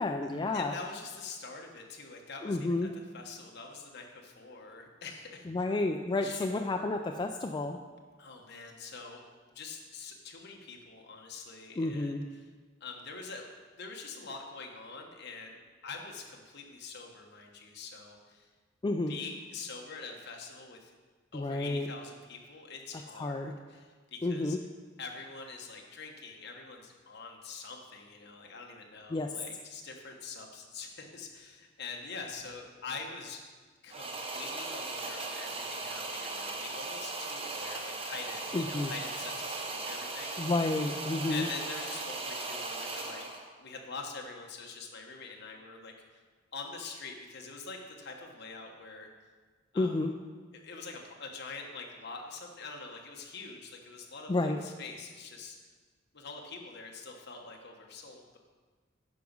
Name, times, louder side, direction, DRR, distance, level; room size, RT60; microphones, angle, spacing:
voice 1, 0.0-0.7 2.4-2.9 5.5-7.8 11.8-12.2 18.8-19.1 21.3-21.9 23.2-23.5 24.2-24.6 29.1-29.3 38.5-38.9 40.4-41.5 49.8-50.1 54.3-54.6, left 2 dB, 20° left, 4 dB, 0.3 m, -30 dB
voice 2, 0.5-5.5 6.2-6.5 8.2-9.2 9.5-12.5 12.8-15.6 15.8-18.5 19.1-20.9 21.3-24.6 25.0-33.6 33.8-40.4 41.3-43.2 43.6-46.2 46.5-49.1 49.7-49.9 50.5-55.6 56.1-58.4, left 4 dB, 60° left, 1 dB, 1.2 m, -45 dB
sound 1, 33.9-43.5, right 3 dB, 30° right, 0.9 m, -38 dB
9.5 x 6.0 x 5.3 m, 1.4 s
head